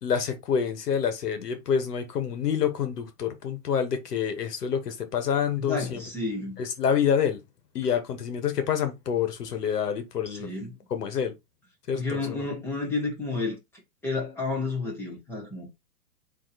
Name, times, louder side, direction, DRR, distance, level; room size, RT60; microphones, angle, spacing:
voice 1, 0.0-6.0 6.6-7.4 7.7-10.5 10.9-11.3 11.9-12.5, left 7 dB, 75° left, 1.3 m, -27 dB
voice 2, 5.7-6.6 10.3-10.8 11.9-13.6 14.0-15.8, left 3 dB, 5° left, 0.8 m, -31 dB
3.9 x 2.8 x 4.0 m
hypercardioid pair, 150°, 47 cm